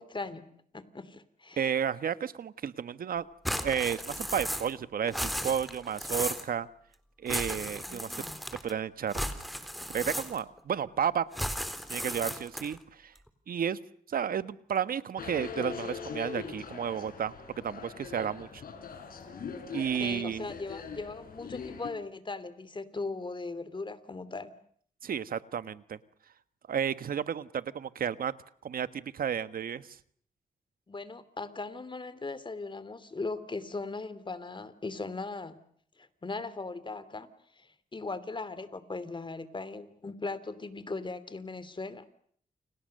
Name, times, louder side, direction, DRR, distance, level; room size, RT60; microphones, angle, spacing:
voice 1, 0.0-1.7 7.9-8.4 19.7-24.5 30.9-35.6 36.0-37.3 37.6-42.0, left 3 dB, 35° left, 15 dB, 2.8 m, -39 dB
voice 2, 1.6-3.2 3.6-6.7 7.2-8.1 8.6-9.2 9.9-11.3 11.9-13.1 13.5-13.8 14.1-18.6 19.7-20.5 25.0-26.0 26.7-28.3 28.6-30.0, right 8 dB, 80° right, 13 dB, 1.4 m, -32 dB
sound 1, 3.4-4.8 5.0-6.5 7.3-8.7 9.1-10.6 11.3-12.8, equal, ahead, 3.8 m, -35 dB
sound 2, 15.2-21.9, left 6 dB, 80° left, 6.0 m, -41 dB
29.5 x 26.0 x 6.7 m, 0.62 s
cardioid pair, 75°, 15 cm